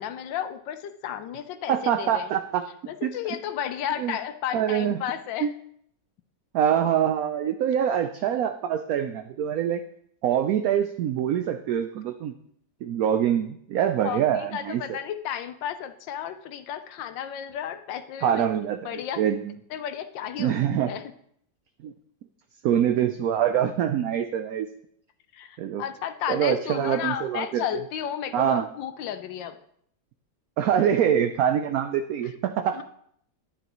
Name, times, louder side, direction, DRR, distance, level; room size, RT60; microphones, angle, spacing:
voice 1, 0.0-2.3 2.9-5.5 14.0-18.5 18.8-19.2 19.7-20.6 20.9-21.1 25.3-29.6 32.7-32.8, left 10 dB, 80° left, 10 dB, 1.3 m, -33 dB
voice 2, 1.7-2.6 3.0-3.1 4.0-4.1 4.5-5.0 5.4-5.5 6.5-9.8 10.2-12.3 12.8-14.8 18.2-18.8 19.2-19.4 20.4-20.9 21.8-21.9 22.6-24.7 25.6-25.8 26.3-27.8 28.3-28.7 30.6-32.7, right 9 dB, 70° right, 7 dB, 0.9 m, -24 dB
11.0 x 10.0 x 3.0 m, 0.67 s
omnidirectional pair, 2.0 m